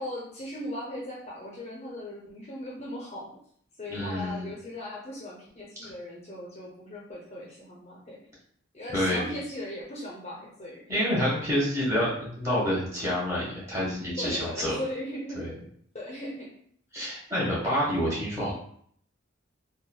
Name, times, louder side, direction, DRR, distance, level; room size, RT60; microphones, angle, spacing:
voice 1, 0.0-3.3 3.8-8.2 8.7-10.9 14.2-15.6 15.9-16.5, left 1 dB, 35° left, -4 dB, 0.5 m, -38 dB
voice 2, 3.9-4.5 5.8-5.9 8.9-9.3 10.9-14.8 15.3-15.5 16.9-18.5, equal, 15° right, -8 dB, 1.2 m, -28 dB
3.3 x 2.2 x 2.2 m, 0.62 s
head